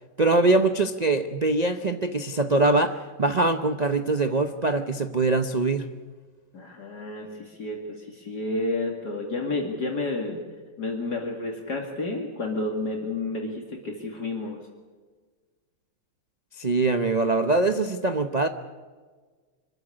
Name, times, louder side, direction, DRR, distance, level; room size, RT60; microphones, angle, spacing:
voice 1, 0.2-5.8 16.6-18.5, right 2 dB, 80° right, 8 dB, 0.3 m, -23 dB
voice 2, 6.5-10.4 10.8-14.6, left 2 dB, 55° left, 1 dB, 2.9 m, -30 dB
25.5 x 14.0 x 9.9 m, 1.5 s
omnidirectional pair, 2.2 m